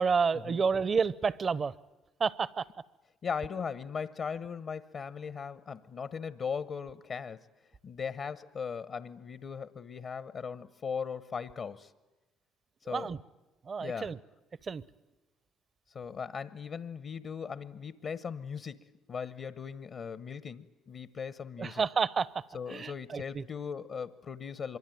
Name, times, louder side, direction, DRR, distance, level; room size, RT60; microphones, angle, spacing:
voice 1, 0.0-1.7 2.2-2.7 12.9-13.2 13.6-14.2 14.6-14.8 21.6-23.4, right 5 dB, 40° right, 20 dB, 0.9 m, -30 dB
voice 2, 3.2-7.4 7.8-11.9 12.9-13.1 13.8-14.1 15.9-21.8 22.5-24.8, left 6 dB, 50° left, 15 dB, 0.9 m, -38 dB
25.0 x 23.0 x 9.3 m, 1.1 s
hypercardioid pair, 60°, 0 cm